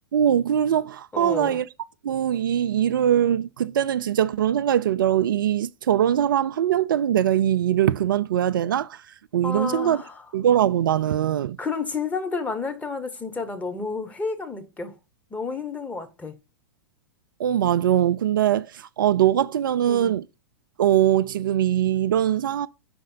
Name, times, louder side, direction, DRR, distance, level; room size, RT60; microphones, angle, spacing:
voice 1, 0.1-1.7 2.0-9.0 9.3-10.0 10.3-11.6 17.4-20.2 20.8-22.7, right 10 dB, 65° right, 0.4 m, -22 dB
voice 2, 1.1-1.6 9.4-10.1 11.6-14.9 15.3-16.3 19.9-20.1, left 4 dB, 10° left, 1.1 m, -30 dB
5.5 x 4.2 x 5.5 m
figure-of-eight pair, 105°, 12 cm